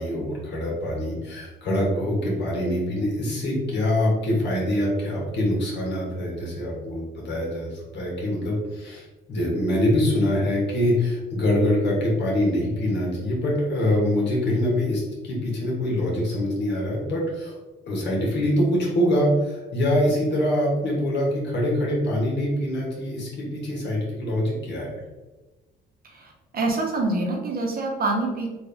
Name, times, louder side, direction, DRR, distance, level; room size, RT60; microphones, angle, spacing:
voice 1, 0.0-17.5 17.9-24.9, left 1 dB, 60° left, -3 dB, 1.5 m, -24 dB
voice 2, 26.0-28.5, right 2 dB, 50° right, 0 dB, 0.9 m, -26 dB
3.5 x 2.6 x 3.4 m, 1.2 s
cardioid pair, 90°, 20 cm